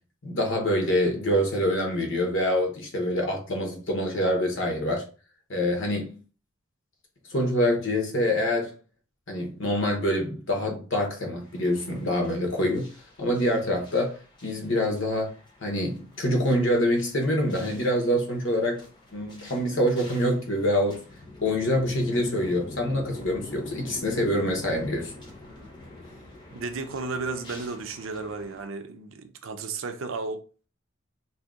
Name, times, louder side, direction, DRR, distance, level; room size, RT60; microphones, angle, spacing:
voice 1, 0.2-5.1 5.5-6.2 7.3-8.7 9.3-12.9 13.2-15.3 15.6-18.8 19.1-21.0 21.4-25.1, equal, 60° left, 1.0 m, -25 dB
sound 1, 11.4-28.7, left 2 dB, 20° left, 0.8 m, -45 dB
voice 2, 26.5-30.4, right 4 dB, 65° right, 0.5 m, -33 dB
2.8 x 2.7 x 3.6 m
head